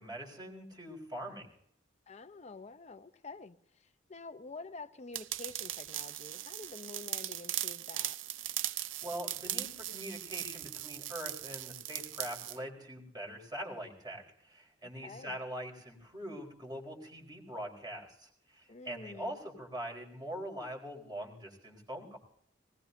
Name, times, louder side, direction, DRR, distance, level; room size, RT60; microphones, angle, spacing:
voice 1, 0.0-1.5 9.0-22.2, equal, 20° right, 4.4 m, -43 dB
voice 2, 2.1-8.2 15.0-15.4 18.7-19.3, left 3 dB, 35° left, 0.8 m, -48 dB
sound 1, 5.1-12.6, right 14 dB, 85° right, 0.5 m, -39 dB
20.0 x 19.5 x 2.7 m
head